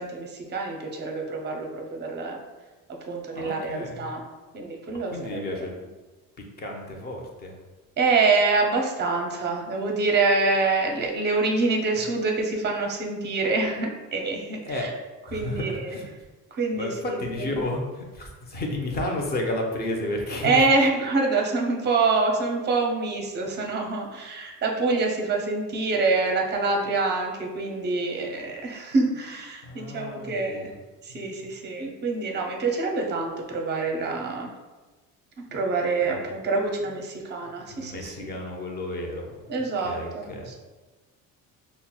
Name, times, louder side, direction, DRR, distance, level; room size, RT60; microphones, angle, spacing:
voice 1, 0.0-2.4 3.0-4.2 4.5-5.4 8.0-14.9 15.3-16.0 16.5-17.6 20.4-30.7 31.0-34.5 35.4-38.3 39.5-40.6, right 3 dB, 30° right, 1 dB, 0.5 m, -26 dB
voice 2, 3.3-4.1 4.9-5.8 6.6-7.6 14.6-14.9 15.2-16.1 16.7-20.6 28.1-28.3 29.6-30.7 31.1-31.2 31.4-31.6 35.5-35.6 36.0-36.2 37.7-39.4 39.8-40.5, left 1 dB, 25° left, 1 dB, 0.6 m, -32 dB
5.7 x 2.0 x 2.2 m, 1.2 s
cardioid pair, 140°, 36 cm